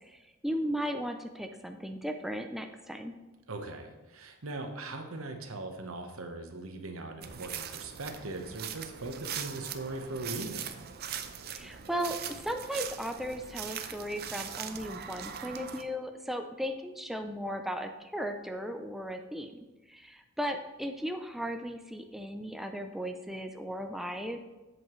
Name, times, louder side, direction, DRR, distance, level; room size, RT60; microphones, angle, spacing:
voice 1, 0.0-3.1 11.5-24.4, equal, ahead, 5 dB, 0.4 m, -36 dB
voice 2, 3.5-10.7, right 2 dB, 75° right, 5 dB, 1.0 m, -40 dB
sound 1, 7.2-15.8, right 8 dB, 50° right, 0.5 m, -41 dB
8.0 x 7.7 x 3.1 m, 1.1 s
head